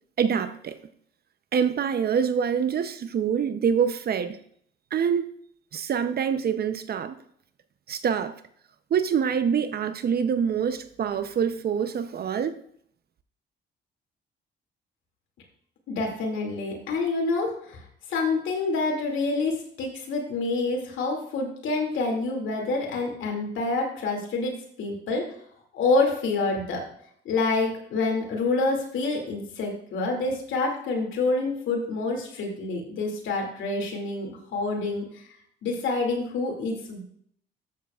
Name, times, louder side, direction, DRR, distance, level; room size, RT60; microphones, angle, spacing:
voice 1, 0.2-0.8 1.5-4.4 4.9-5.3 5.7-7.2 7.9-8.3 8.9-12.6, right 7 dB, 50° right, 0.7 m, -25 dB
voice 2, 15.9-17.8 18.1-25.3 25.7-26.8 27.2-35.3 35.6-37.0, left 3 dB, 80° left, 2.4 m, -27 dB
13.0 x 7.3 x 2.4 m
cardioid pair, 90°, 20 cm